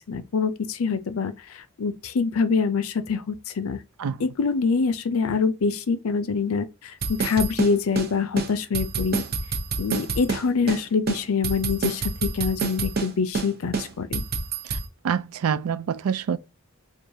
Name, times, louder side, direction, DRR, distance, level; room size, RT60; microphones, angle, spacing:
voice 1, 0.1-1.3 1.8-3.8 4.2-6.7 7.1-9.2 9.8-14.2, left 5 dB, 70° left, 0.5 m, -25 dB
sound 1, 7.0-8.1 8.4-8.5 8.7-10.4 10.7-10.8 11.1-13.1 13.3-13.5 13.7-14.8, right 4 dB, 45° right, 0.7 m, -27 dB
voice 2, 15.0-16.4, right 7 dB, 75° right, 0.4 m, -26 dB
4.6 x 2.4 x 2.7 m
head